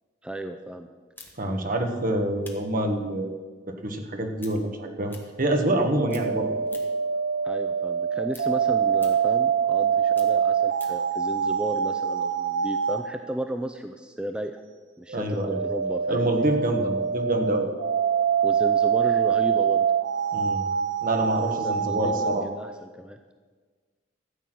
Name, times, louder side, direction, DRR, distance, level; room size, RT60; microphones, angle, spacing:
voice 1, 0.2-0.9 7.4-14.6 15.0-16.5 18.4-19.9 21.3-23.2, right 1 dB, 5° right, 5 dB, 0.4 m, -34 dB
sound 1, 1.2-5.8 6.1-7.1 7.5-11.1, left 3 dB, 10° left, 1.4 m, -49 dB
voice 2, 1.4-3.4 3.7-6.5 15.1-15.6 16.1-17.7 20.3-20.6 21.0-22.5, right 1 dB, 45° right, 4 dB, 1.4 m, -26 dB
sound 2, 5.7-13.1 15.1-22.4, right 7 dB, 85° right, 0.8 m, -25 dB
13.0 x 8.3 x 6.1 m, 1.5 s
head